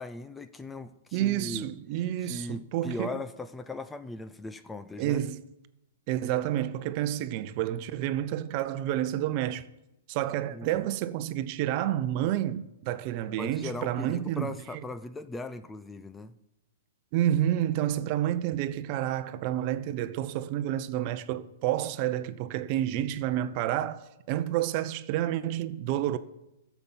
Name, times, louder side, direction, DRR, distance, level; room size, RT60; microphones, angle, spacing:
voice 1, 0.0-1.6 2.2-5.2 10.5-10.8 13.4-16.3, left 2 dB, 10° left, 0.5 m, -38 dB
voice 2, 1.1-3.2 5.0-5.4 6.1-9.6 10.1-14.8 17.1-24.0 24.3-26.2, right 12 dB, 45° right, 0.7 m, -29 dB
13.5 x 7.1 x 7.4 m
hypercardioid pair, 135°, 0 cm